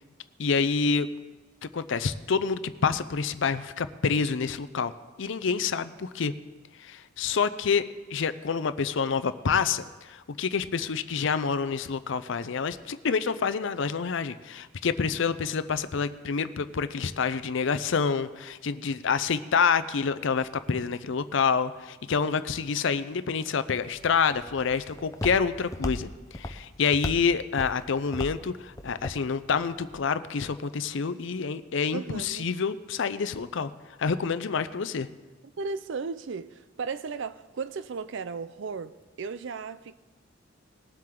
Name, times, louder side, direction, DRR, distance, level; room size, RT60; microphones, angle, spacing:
voice 1, 0.4-1.1 1.6-4.9 5.2-6.3 6.8-33.7 34.0-35.1, left 5 dB, 65° left, 0.5 m, -27 dB
Walk footsteps, 23.8-30.0, left 1 dB, 15° left, 0.6 m, -38 dB
voice 2, 31.9-32.5 35.6-39.9, right 4 dB, 65° right, 0.5 m, -35 dB
20.0 x 7.6 x 3.7 m
head